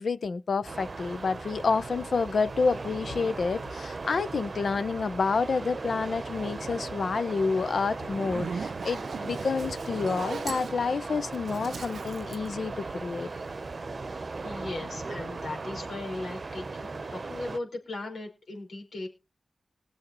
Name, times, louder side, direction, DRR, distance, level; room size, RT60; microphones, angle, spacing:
voice 1, 0.0-13.3, left 4 dB, 70° left, 0.8 m, -29 dB
sound 1, 0.6-17.6, right 3 dB, 50° right, 0.9 m, -38 dB
Zipper (clothing), 8.0-13.3, right 5 dB, 75° right, 0.5 m, -38 dB
voice 2, 14.4-19.1, left 2 dB, 85° left, 5.1 m, -38 dB
21.5 x 7.4 x 3.1 m
wide cardioid pair, 95°, 0 cm